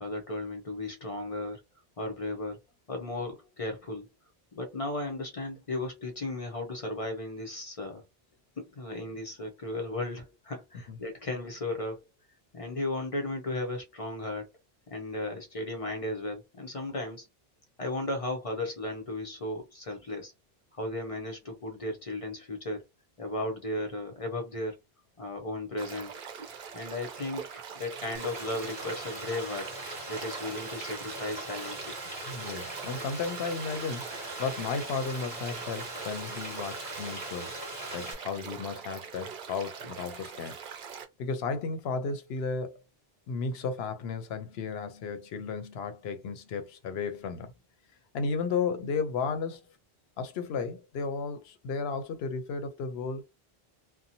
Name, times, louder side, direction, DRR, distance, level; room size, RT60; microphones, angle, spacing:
voice 1, 0.0-1.6 2.0-2.6 2.9-4.1 4.5-8.0 8.6-12.0 12.5-14.5 14.9-17.3 17.8-20.3 20.7-22.8 23.2-24.8 25.2-26.1 26.7-29.7 30.1-32.0, left 2 dB, 40° left, 0.6 m, -35 dB
sound 1, 25.8-41.0, right 6 dB, 60° right, 0.7 m, -43 dB
Frying (food), 28.1-38.1, right 1 dB, 25° right, 1.1 m, -40 dB
voice 2, 32.3-37.5 37.9-40.6 41.2-42.8 43.3-47.5 48.1-49.6 50.2-53.2, left 5 dB, 80° left, 0.8 m, -34 dB
2.6 x 2.2 x 2.7 m
omnidirectional pair, 1.1 m